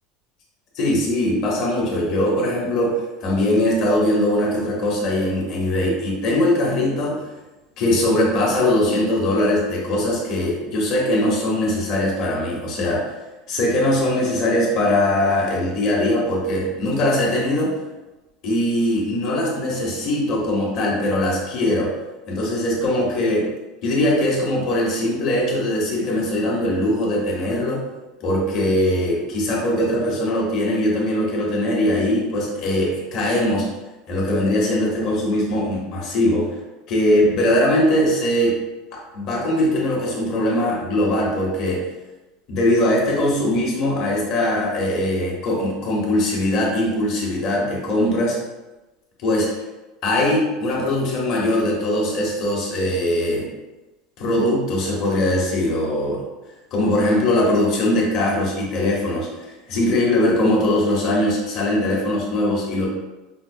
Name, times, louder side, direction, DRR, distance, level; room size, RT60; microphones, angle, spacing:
voice 1, 0.8-7.2 7.8-13.2 13.5-17.7 18.4-21.9 22.3-23.5 23.8-27.8 28.2-33.7 34.1-36.5 36.9-38.6 38.9-41.8 42.5-48.4 49.2-49.5 50.0-53.5 54.2-56.2 56.7-62.9, left 1 dB, 45° left, -3 dB, 1.0 m, -21 dB
5.0 x 2.0 x 2.6 m, 1.1 s
supercardioid pair, 160°, 0 cm